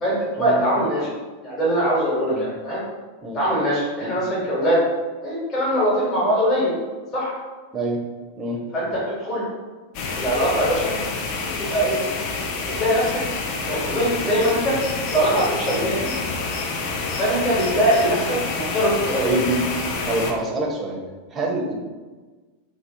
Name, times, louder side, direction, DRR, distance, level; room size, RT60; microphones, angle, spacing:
voice 1, 0.0-1.1 1.4-2.8 3.3-4.8 5.2-6.7 7.1-7.3 8.7-9.4 10.1-10.9 11.4-12.0 12.7-13.2 13.6-14.8 15.1-16.3 17.2-19.3, equal, 25° left, -7 dB, 1.0 m, -22 dB
sound 1, 9.9-20.3, left 4 dB, 45° left, 0.3 m, -28 dB
voice 2, 19.2-19.6 20.0-21.0 21.3-21.7, right 2 dB, 20° right, -1 dB, 0.5 m, -26 dB
2.4 x 2.0 x 2.8 m, 1.3 s
figure-of-eight pair, 90°, 0 cm